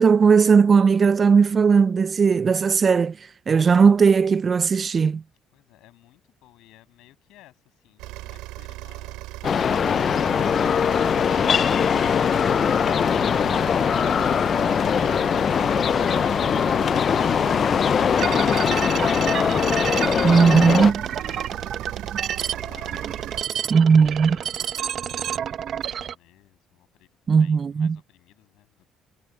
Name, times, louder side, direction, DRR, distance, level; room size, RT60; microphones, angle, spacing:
voice 1, 0.0-3.2 3.5-5.2 20.2-21.0 23.7-24.4 27.3-28.0, right 5 dB, 35° right, 0.3 m, -17 dB
voice 2, 5.5-9.7 20.8-24.6 24.9-28.9, left 16 dB, 80° left, 6.2 m, -55 dB
sound 1, 8.0-23.4, right 19 dB, 90° right, 3.9 m, -37 dB
sound 2, 9.4-20.9, left 7 dB, 45° left, 0.3 m, -21 dB
sound 3, 18.2-26.1, right 9 dB, 55° right, 0.9 m, -29 dB
cardioid pair, 100°, 0 cm